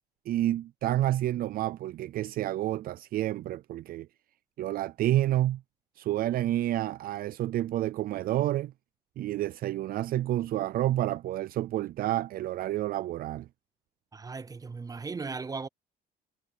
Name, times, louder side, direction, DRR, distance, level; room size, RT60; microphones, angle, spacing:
voice 1, 0.3-4.1 4.6-5.6 6.0-8.7 9.2-13.5, right 14 dB, 60° right, 0.5 m, -29 dB
voice 2, 14.1-15.7, right 4 dB, 20° right, 0.6 m, -37 dB
cardioid pair, 110°, 17 cm